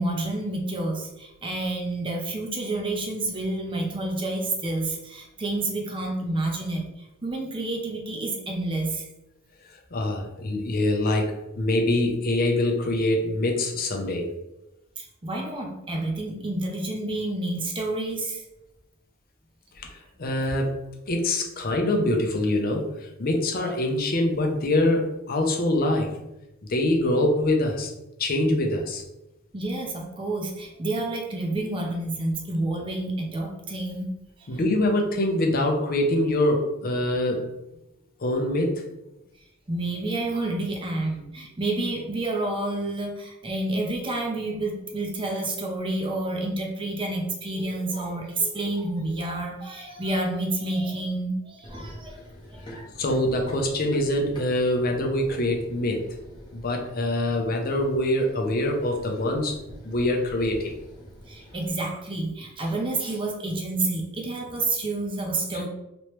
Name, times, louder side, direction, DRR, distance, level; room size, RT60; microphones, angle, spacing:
voice 1, 0.0-9.1 15.0-18.4 29.5-34.1 34.4-34.6 39.7-52.2 52.5-52.9 61.3-65.7, right 2 dB, 25° right, 0 dB, 0.6 m, -29 dB
voice 2, 9.9-14.3 19.8-20.8 21.1-26.2 26.7-27.9 28.2-29.0 34.5-37.5 38.2-38.8 52.7-56.1 56.5-59.6 59.8-60.8 65.5-65.6, left 1 dB, 45° left, 2 dB, 0.6 m, -24 dB
Run, 51.6-61.7, equal, 25° left, 0.9 m, -45 dB
3.0 x 3.0 x 3.1 m, 0.92 s
head